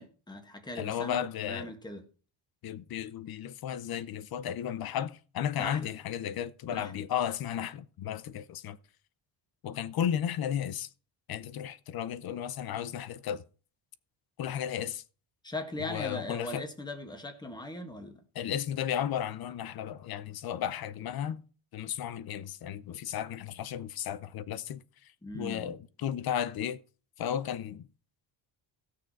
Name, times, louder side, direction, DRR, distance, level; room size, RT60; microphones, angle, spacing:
voice 1, 0.0-1.2 1.5-2.0 5.6-5.9 6.7-6.9 15.4-18.2 25.2-25.8, left 2 dB, 10° left, 1.7 m, -39 dB
voice 2, 0.8-1.7 2.6-8.8 9.6-10.9 11.3-13.4 14.4-15.0 15.8-16.7 18.3-21.4 21.7-24.8 25.3-26.8 27.2-27.9, left 9 dB, 50° left, 0.7 m, -34 dB
16.5 x 6.7 x 4.6 m
cardioid pair, 175°, 47 cm